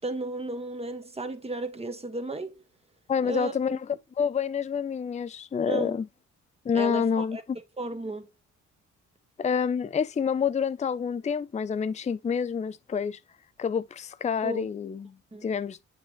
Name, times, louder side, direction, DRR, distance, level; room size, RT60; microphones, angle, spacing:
voice 1, 0.0-2.6 3.2-3.8 5.7-6.0 6.7-7.4 7.8-8.3 14.4-14.7 15.3-15.5, right 2 dB, 20° right, 1.6 m, -34 dB
voice 2, 3.1-3.8 4.2-6.1 6.6-7.4 9.4-13.2 13.6-15.1 15.4-15.8, left 6 dB, 25° left, 0.5 m, -28 dB
8.3 x 6.3 x 3.1 m
cardioid pair, 90°, 30 cm